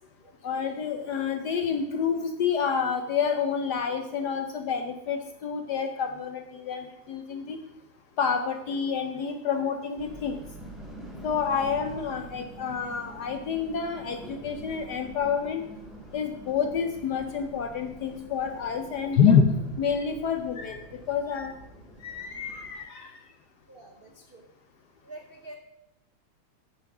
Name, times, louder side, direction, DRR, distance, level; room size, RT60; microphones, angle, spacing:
voice 1, 0.4-7.6 8.2-10.4 11.2-15.6 16.1-19.5 19.8-21.5 22.0-23.1, left 6 dB, 65° left, 6 dB, 1.1 m, -28 dB
sound 1, 10.0-22.7, right 1 dB, ahead, 3.2 m, -45 dB
voice 2, 23.7-24.4 25.0-25.6, right 2 dB, 55° right, 3 dB, 0.6 m, -46 dB
8.5 x 7.4 x 6.0 m, 0.87 s
omnidirectional pair, 2.4 m